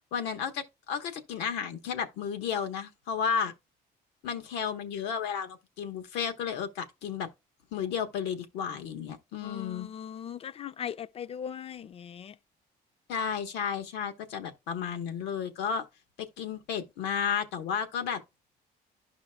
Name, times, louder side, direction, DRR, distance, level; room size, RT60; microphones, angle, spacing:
voice 1, 0.1-3.5 4.2-7.3 7.7-9.9 13.1-15.8 16.2-18.2, left 7 dB, 90° left, 1.3 m, -33 dB
voice 2, 9.4-12.4, left 8 dB, 35° left, 0.5 m, -39 dB
12.0 x 5.1 x 2.3 m
cardioid pair, 110°, 17 cm